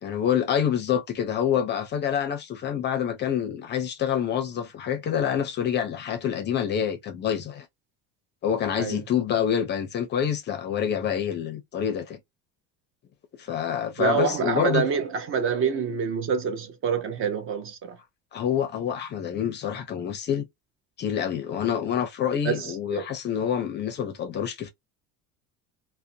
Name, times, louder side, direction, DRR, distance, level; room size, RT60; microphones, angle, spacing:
voice 1, 0.0-7.7 8.4-12.2 13.4-14.9 18.3-20.5 21.0-24.7, left 9 dB, 35° left, 0.5 m, -27 dB
voice 2, 14.0-18.0 22.4-23.1, right 6 dB, 40° right, 0.6 m, -27 dB
2.5 x 2.1 x 2.6 m
cardioid pair, 140°, 33 cm